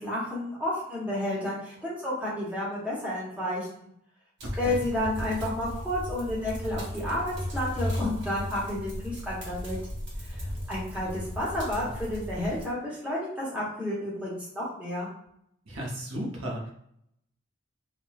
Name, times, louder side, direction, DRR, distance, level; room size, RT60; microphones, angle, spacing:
voice 1, 0.0-3.9 4.6-9.8 10.2-15.1, left 1 dB, 5° right, -7 dB, 0.8 m, -31 dB
sound 1, 4.4-12.6, equal, 60° right, 1.0 m, -36 dB
voice 2, 4.4-4.8 15.7-16.7, right 1 dB, 80° right, -2 dB, 0.7 m, -35 dB
3.1 x 2.1 x 2.3 m, 0.72 s
head